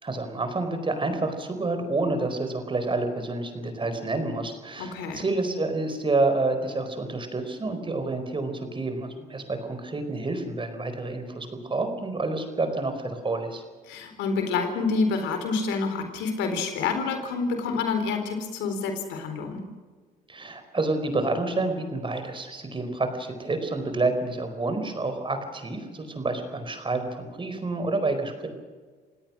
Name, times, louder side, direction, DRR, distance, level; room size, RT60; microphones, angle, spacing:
voice 1, 0.0-13.6 20.3-28.5, right 2 dB, 30° right, 7 dB, 4.7 m, -28 dB
voice 2, 4.8-5.2 13.9-19.6, left 4 dB, 90° left, 6 dB, 4.2 m, -28 dB
28.0 x 17.5 x 6.3 m, 1.5 s
cardioid pair, 85°, 18 cm